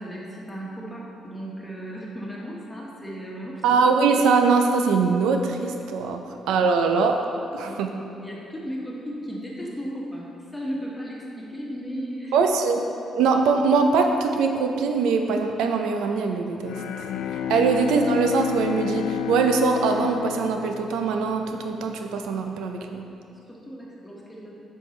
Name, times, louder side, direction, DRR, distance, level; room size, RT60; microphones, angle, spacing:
voice 1, 0.0-3.6 7.6-7.7 8.2-12.4 23.5-24.6, equal, 10° left, -4 dB, 1.4 m, -35 dB
voice 2, 3.6-7.2 7.5-7.9 12.3-12.8 13.1-16.8 17.3-23.1, right 4 dB, 90° right, 4 dB, 0.4 m, -22 dB
Bowed string instrument, 16.6-21.4, left 9 dB, 80° left, 0.3 m, -30 dB
7.6 x 5.4 x 3.2 m, 2.7 s
cardioid pair, 90°, 0 cm